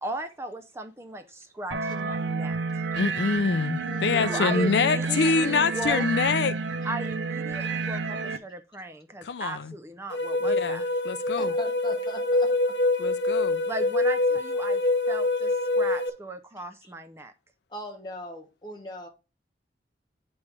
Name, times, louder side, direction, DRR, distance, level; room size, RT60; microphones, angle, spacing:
voice 1, 0.0-2.8 4.2-6.1 6.8-11.0 13.7-14.8 15.1-17.3, right 2 dB, 15° right, 0.4 m, -36 dB
sound 1, 1.7-8.4, right 4 dB, 80° right, 0.5 m, -30 dB
voice 2, 3.0-6.5 9.2-9.7 10.4-11.5 13.0-13.6, left 5 dB, 70° left, 0.4 m, -26 dB
voice 3, 3.8-4.4 11.4-12.5 16.8-16.9 17.7-19.1, equal, 25° left, 1.2 m, -39 dB
sound 2, 10.1-16.1, left 2 dB, 90° left, 1.3 m, -25 dB
8.5 x 3.2 x 4.7 m
head